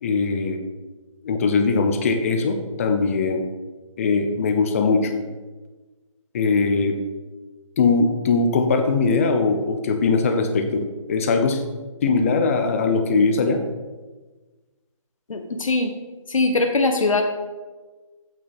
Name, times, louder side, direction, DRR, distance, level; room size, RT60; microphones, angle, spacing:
voice 1, 0.0-0.6 1.2-3.4 4.0-5.1 6.3-7.0 7.8-10.8 11.1-11.6 12.0-13.6, left 4 dB, 25° left, 6 dB, 0.8 m, -20 dB
voice 2, 15.3-15.9 16.3-17.2, left 3 dB, 70° left, 4 dB, 1.1 m, -21 dB
8.4 x 6.6 x 5.3 m, 1.3 s
figure-of-eight pair, 160°, 18 cm